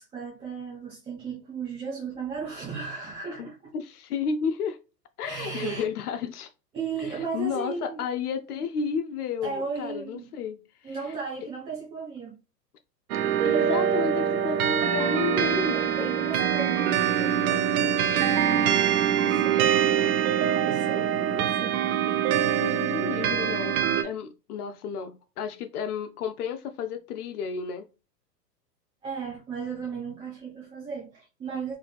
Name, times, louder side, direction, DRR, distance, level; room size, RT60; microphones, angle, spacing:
voice 1, 0.0-3.7 5.2-5.8 6.7-8.0 9.4-10.3 10.8-12.3 15.5-17.6 18.1-18.7 19.2-21.8 22.1-22.7 29.0-31.7, right 5 dB, 10° right, 0.4 m, -36 dB
voice 2, 3.7-4.8 5.2-6.5 7.3-10.9 13.4-16.1 22.5-27.9, left 6 dB, 65° left, 0.5 m, -32 dB
sound 1, 13.1-24.0, right 9 dB, 60° right, 0.6 m, -24 dB
3.1 x 2.5 x 2.3 m
hypercardioid pair, 110°, 49 cm